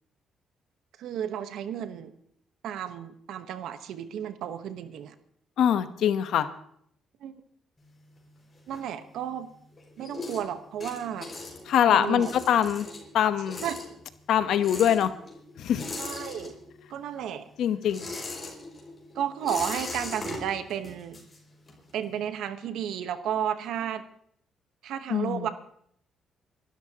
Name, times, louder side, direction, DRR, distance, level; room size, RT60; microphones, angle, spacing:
voice 1, 1.0-2.1 2.6-5.1 7.2-7.4 8.7-9.5 10.0-11.3 11.9-12.4 13.6-13.8 16.0-16.5 16.9-17.4 19.1-21.2 21.9-24.0 24.8-25.5, right 9 dB, 80° right, 10 dB, 1.1 m, -33 dB
voice 2, 5.6-6.5 11.7-12.9 13.1-13.6 14.3-15.1 15.6-15.9 17.6-18.1 25.1-25.5, left 9 dB, 75° left, 11 dB, 1.0 m, -23 dB
sound 1, 7.8-9.4 9.7-16.9 17.2-21.9, left 2 dB, 30° left, 5.3 m, -40 dB
28.5 x 12.5 x 2.9 m, 0.68 s
cardioid pair, 90°, 0 cm